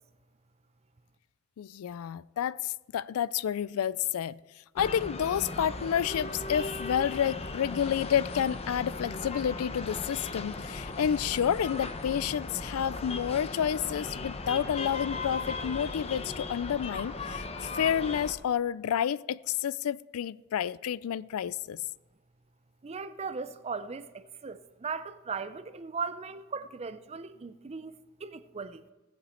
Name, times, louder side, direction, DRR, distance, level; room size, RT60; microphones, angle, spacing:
voice 1, 1.6-4.4 4.8-21.8, left 9 dB, 85° left, 0.3 m, -30 dB
sound 1, 4.8-18.3, left 3 dB, 30° left, 0.7 m, -37 dB
voice 2, 22.8-28.8, right 5 dB, 30° right, 0.5 m, -38 dB
17.5 x 7.2 x 4.3 m
head